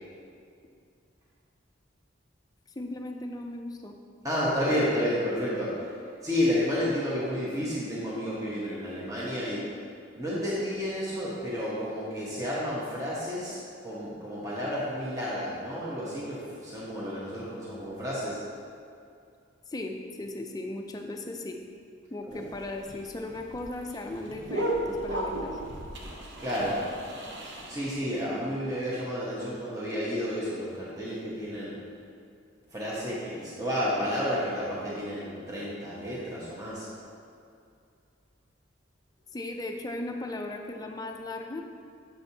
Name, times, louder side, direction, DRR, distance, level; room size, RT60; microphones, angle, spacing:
voice 1, 2.8-4.0 4.7-4.8 19.7-21.6 22.1-25.5 39.3-41.6, left 2 dB, 20° left, 3 dB, 0.4 m, -37 dB
voice 2, 4.2-5.8 6.2-9.6 10.2-18.4 22.3-22.4 26.4-26.8 27.7-31.8 32.7-36.9, equal, 20° right, -8 dB, 0.9 m, -31 dB
sound 1, 22.3-28.0, right 1 dB, 65° right, 0.8 m, -35 dB
6.9 x 6.1 x 2.8 m, 2.4 s
head